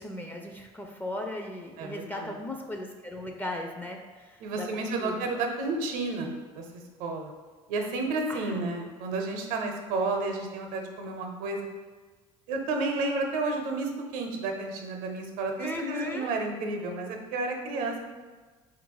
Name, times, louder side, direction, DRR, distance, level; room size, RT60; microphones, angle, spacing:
voice 1, 0.0-5.3 8.3-8.6 15.6-16.3, left 1 dB, 15° left, 2 dB, 0.5 m, -37 dB
voice 2, 1.8-2.4 4.4-6.6 7.0-7.3 7.7-11.7 12.5-18.0, right 3 dB, 70° right, 3 dB, 0.7 m, -31 dB
3.7 x 2.5 x 4.6 m, 1.4 s
supercardioid pair, 75°, 14 cm